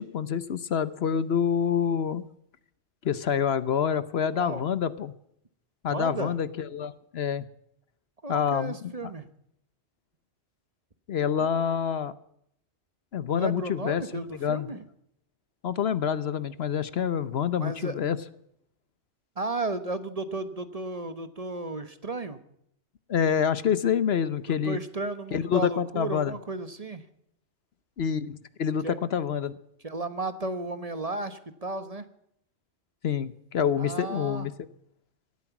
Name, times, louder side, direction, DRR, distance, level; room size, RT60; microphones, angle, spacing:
voice 1, 0.0-2.2 3.0-5.1 5.8-7.4 8.3-8.8 11.1-12.1 13.1-14.8 15.6-18.2 23.1-24.8 25.3-26.3 28.0-29.6 33.0-34.5, left 7 dB, 65° left, 16 dB, 1.0 m, -27 dB
voice 2, 4.3-4.6 5.9-6.4 8.2-9.3 11.4-11.5 13.3-14.8 17.6-18.0 19.4-22.4 24.5-27.0 28.8-29.0 29.8-32.1 33.8-34.5, right 2 dB, 35° right, 12 dB, 1.1 m, -34 dB
18.0 x 13.0 x 5.9 m, 0.72 s
omnidirectional pair, 1.2 m